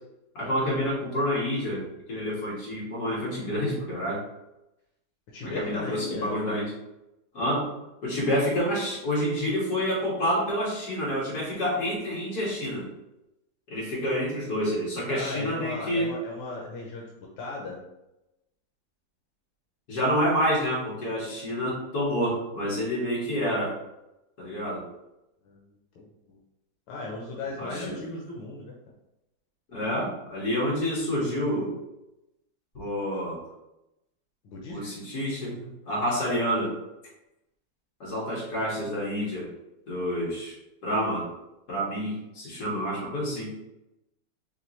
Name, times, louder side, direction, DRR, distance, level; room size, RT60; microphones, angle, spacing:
voice 1, 0.3-4.2 5.4-6.7 7.3-7.7 8.0-12.9 13.7-16.1 19.9-23.7 24.4-24.8 27.6-28.0 29.7-31.7 32.7-33.4 34.7-36.7 38.0-39.5 39.9-40.6 40.8-41.3 41.7-43.5, equal, 60° left, -6 dB, 2.3 m, -28 dB
voice 2, 5.3-6.3 15.1-17.1 17.4-17.8 25.4-26.4 26.9-28.7 34.4-34.8, left 2 dB, 85° left, -2 dB, 1.5 m, -37 dB
4.8 x 3.4 x 3.1 m, 0.90 s
omnidirectional pair, 2.0 m